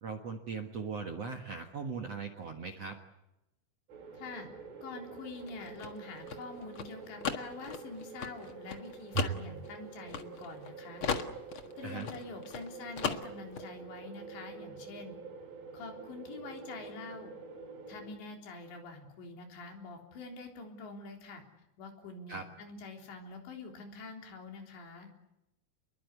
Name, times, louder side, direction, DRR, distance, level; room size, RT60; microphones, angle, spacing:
voice 1, 0.0-3.0 9.1-9.3 11.8-12.1 22.3-22.4, right 5 dB, 60° right, 4 dB, 1.7 m, -38 dB
sound 1, 3.9-18.2, right 5 dB, 75° right, 5.6 m, -48 dB
voice 2, 4.1-4.5 4.8-11.0 11.8-15.2 15.7-17.3 17.9-21.4 21.8-25.1, left 3 dB, 80° left, 3 dB, 5.9 m, -46 dB
Shaking Microphone, 5.4-10.7 11.0-12.7 13.0-13.7, left 6 dB, 65° left, 1.3 m, -37 dB
29.0 x 22.0 x 8.3 m, 0.92 s
omnidirectional pair, 5.0 m